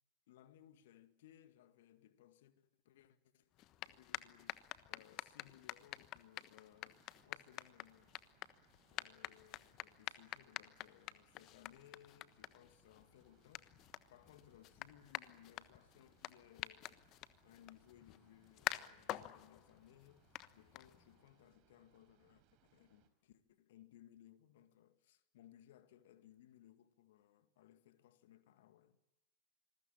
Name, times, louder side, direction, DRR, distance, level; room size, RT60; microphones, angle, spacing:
voice 1, 0.3-8.2 8.9-13.7 14.1-17.0 17.4-29.0, left 12 dB, 55° left, 2.1 m, -64 dB
sound 1, 3.5-21.3, left 15 dB, 35° left, 1.2 m, -49 dB
sound 2, 6.7-23.1, right 9 dB, 40° right, 4.3 m, -75 dB
27.5 x 21.0 x 8.6 m
figure-of-eight pair, 90°, 0 cm